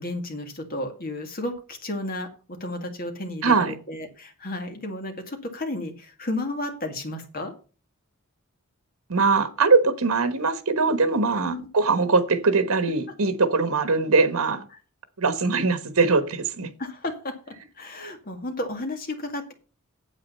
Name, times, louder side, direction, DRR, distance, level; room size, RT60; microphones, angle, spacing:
voice 1, 0.0-2.3 2.6-7.5 11.3-11.7 14.7-14.8 16.8-17.3 17.8-19.5, left 1 dB, 40° left, 5 dB, 2.1 m, -32 dB
voice 2, 3.4-3.7 9.1-14.6 15.2-16.7, right 4 dB, 85° right, 12 dB, 1.3 m, -21 dB
8.8 x 8.1 x 5.5 m, 0.36 s
head